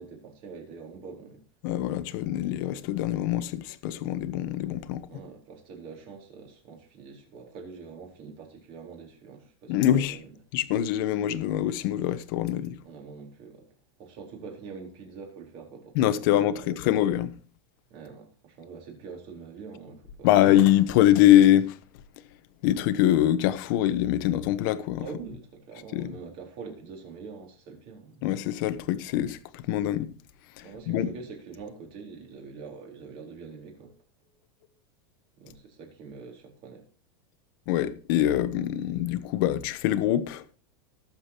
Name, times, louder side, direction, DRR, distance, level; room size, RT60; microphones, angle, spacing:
voice 1, 0.0-1.4 5.1-10.3 12.8-13.7 14.0-16.9 17.9-20.4 25.0-28.2 30.6-34.0 35.4-36.8, right 5 dB, 40° right, 4.1 m, -44 dB
voice 2, 1.6-5.1 9.7-10.2 10.5-12.8 15.9-17.3 20.2-21.8 22.6-25.1 25.9-26.1 28.2-30.1 30.6-31.1 37.7-40.4, left 12 dB, 50° left, 1.1 m, -24 dB
19.0 x 7.4 x 3.0 m
supercardioid pair, 160°, 14 cm